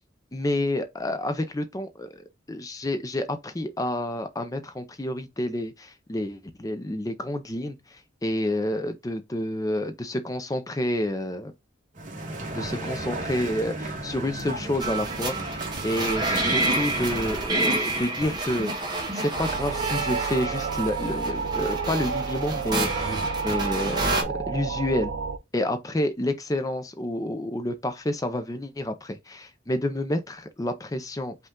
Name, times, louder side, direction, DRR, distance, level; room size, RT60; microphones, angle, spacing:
voice 1, 0.3-11.5 12.5-18.7 19.1-23.1 23.4-25.1 25.5-31.4, left 1 dB, 20° left, 0.5 m, -29 dB
sound 1, 11.9-17.3, right 1 dB, 45° right, 1.2 m, -35 dB
sound 2, 14.8-24.2, right 2 dB, 25° right, 0.8 m, -29 dB
sound 3, 19.3-25.4, right 5 dB, 80° right, 0.5 m, -30 dB
5.3 x 2.3 x 3.6 m
head